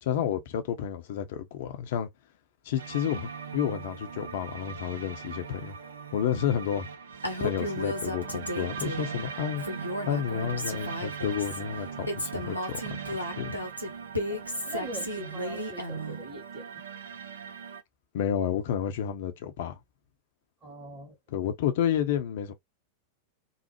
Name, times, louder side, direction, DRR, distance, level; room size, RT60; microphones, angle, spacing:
voice 1, 0.0-2.1 2.6-5.8 6.1-6.9 7.4-9.7 10.0-13.6 18.1-19.8 21.3-22.5, left 9 dB, 55° left, 0.6 m, -30 dB
sound 1, 2.8-17.8, right 6 dB, 65° right, 0.4 m, -40 dB
Female speech woman speaking, 7.2-9.2 9.6-11.6 12.1-16.2, equal, 90° right, 0.8 m, -34 dB
voice 2, 14.3-16.8 20.6-21.2, right 1 dB, 25° right, 1.4 m, -42 dB
3.1 x 2.1 x 2.9 m
figure-of-eight pair, 90°, 0 cm